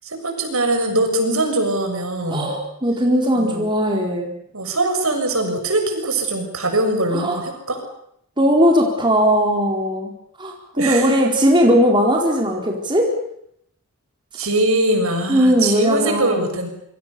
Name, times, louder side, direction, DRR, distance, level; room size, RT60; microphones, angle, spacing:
voice 1, 0.0-2.5 3.3-3.7 4.5-7.8 10.8-11.2 14.3-16.7, right 2 dB, 70° right, 5 dB, 6.7 m, -22 dB
voice 2, 2.3-4.3 7.1-7.4 8.4-10.1 10.4-13.1 15.3-16.5, equal, 20° right, 0 dB, 4.3 m, -18 dB
28.0 x 24.5 x 6.9 m, 0.72 s
head